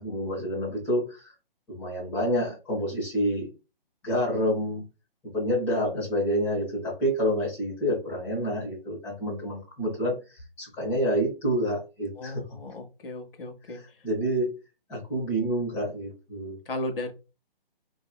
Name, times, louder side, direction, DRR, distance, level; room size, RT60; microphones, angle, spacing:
voice 1, 0.0-1.3 1.7-3.5 4.0-4.8 5.2-12.4 13.7-14.5 14.9-16.6, equal, 5° left, -7 dB, 0.8 m, -28 dB
voice 2, 12.2-13.8 16.7-17.1, left 2 dB, 70° left, 5 dB, 1.0 m, -35 dB
2.9 x 2.6 x 2.3 m, 0.30 s
hypercardioid pair, 165°, 29 cm